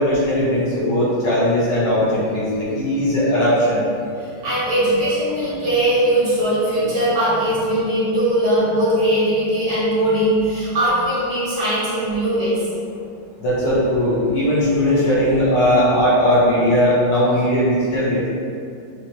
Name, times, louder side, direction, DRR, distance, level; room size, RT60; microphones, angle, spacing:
voice 1, 0.0-3.9 13.4-18.3, equal, 65° left, -8 dB, 1.3 m, -18 dB
voice 2, 4.2-12.6, right 1 dB, 75° right, -11 dB, 2.4 m, -20 dB
5.0 x 2.0 x 2.9 m, 2.5 s
omnidirectional pair, 2.3 m